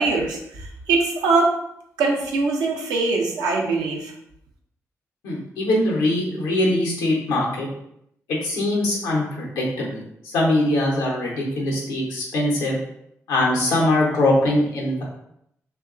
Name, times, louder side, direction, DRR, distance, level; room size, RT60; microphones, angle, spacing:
voice 1, 0.0-1.6 2.0-4.1, right 3 dB, 85° right, 0 dB, 0.5 m, -22 dB
voice 2, 5.2-7.7 8.3-10.0 10.2-12.8 13.3-15.0, left 1 dB, 90° left, -3 dB, 0.7 m, -22 dB
2.8 x 2.2 x 2.4 m, 0.76 s
supercardioid pair, 40°, 7 cm